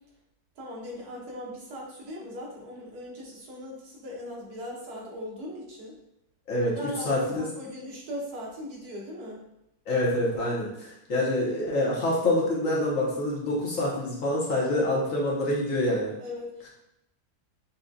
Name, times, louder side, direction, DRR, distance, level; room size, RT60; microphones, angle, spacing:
voice 1, 0.6-6.0 6.7-9.4 16.2-16.7, equal, 75° right, -3 dB, 1.4 m, -39 dB
voice 2, 6.5-7.5 9.9-16.1, left 1 dB, 60° left, -4 dB, 1.2 m, -26 dB
5.7 x 2.2 x 2.6 m, 0.85 s
omnidirectional pair, 1.7 m